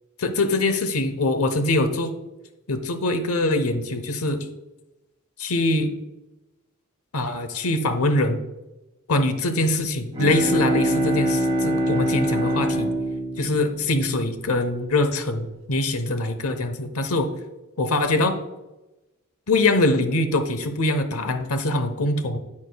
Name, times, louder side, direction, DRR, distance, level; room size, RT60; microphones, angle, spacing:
voice 1, 0.2-2.1 2.7-4.5 5.4-5.9 7.1-8.4 9.1-12.9 13.4-17.3 17.8-18.4 19.5-22.4, left 2 dB, 75° left, 9 dB, 0.9 m, -23 dB
Bowed string instrument, 9.9-14.7, equal, 25° right, 2.9 m, -24 dB
9.7 x 8.4 x 2.3 m, 1.0 s
head